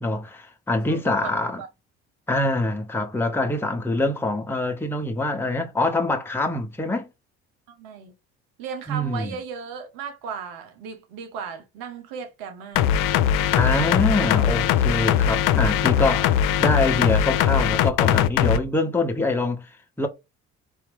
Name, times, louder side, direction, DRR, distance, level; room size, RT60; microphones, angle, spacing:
voice 1, 0.0-1.6 2.3-7.1 8.9-9.4 13.6-20.1, left 2 dB, 5° left, 0.9 m, -25 dB
voice 2, 0.9-1.3 1.6-1.7 7.7-8.1 8.6-12.9 15.8-15.9, right 6 dB, 80° right, 1.2 m, -36 dB
sound 1, 12.8-18.6, left 9 dB, 70° left, 0.6 m, -20 dB
4.7 x 2.7 x 3.3 m
hypercardioid pair, 60°, 35 cm